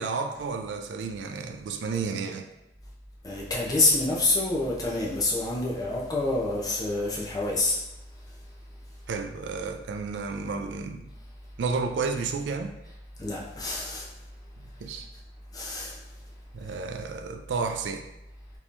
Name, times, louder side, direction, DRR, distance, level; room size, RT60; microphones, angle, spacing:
voice 1, 0.0-2.5 9.1-11.1 11.6-12.7 14.6-15.1 16.5-18.1, right 4 dB, 80° right, 5 dB, 0.4 m, -32 dB
voice 2, 3.2-7.8 13.2-14.1 15.5-15.9, left 2 dB, 20° left, -4 dB, 0.6 m, -27 dB
3.6 x 2.9 x 2.5 m, 0.93 s
head